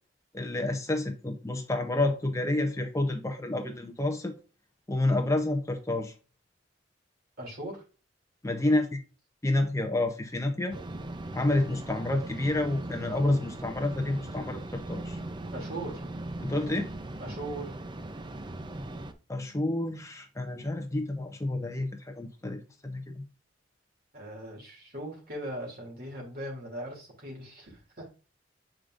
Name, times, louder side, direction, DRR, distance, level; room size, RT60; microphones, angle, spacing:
voice 1, 0.3-4.3 4.9-6.1 8.4-8.9 9.4-10.8 11.3-15.2 16.4-16.9 19.3-23.2, left 2 dB, 15° left, 0.7 m, -29 dB
voice 2, 7.4-7.8 15.5-16.0 17.2-17.8 24.1-28.1, right 1 dB, 55° right, 2.7 m, -39 dB
sound 1, 10.7-19.1, right 1 dB, 25° right, 0.6 m, -39 dB
7.6 x 5.0 x 2.5 m
head